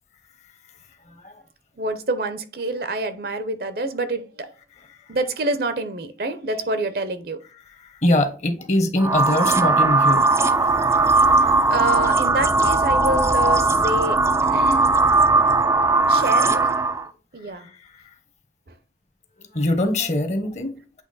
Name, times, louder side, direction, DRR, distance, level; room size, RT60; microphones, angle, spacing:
voice 1, 1.8-4.5 5.1-7.4 11.4-14.9 16.1-16.6 17.3-17.7, right 2 dB, 55° right, 0.7 m, -27 dB
voice 2, 8.0-11.6 17.6-17.7 19.5-20.8, left 1 dB, 40° left, 0.9 m, -23 dB
sound 1, 9.0-17.1, right 3 dB, 15° right, 0.3 m, -18 dB
8.2 x 3.0 x 4.0 m
head